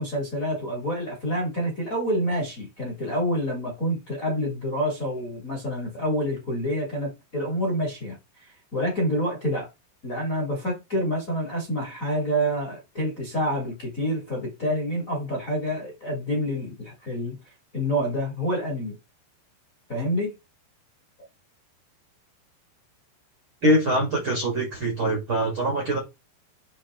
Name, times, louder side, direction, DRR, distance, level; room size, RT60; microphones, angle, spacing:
voice 1, 0.0-8.2 8.7-9.7 10.0-17.4 17.7-19.0 19.9-20.3, equal, 25° left, 2.2 m, -27 dB
voice 2, 23.6-26.0, right 1 dB, 40° right, 2.1 m, -23 dB
8.8 x 4.0 x 3.7 m
omnidirectional pair, 5.1 m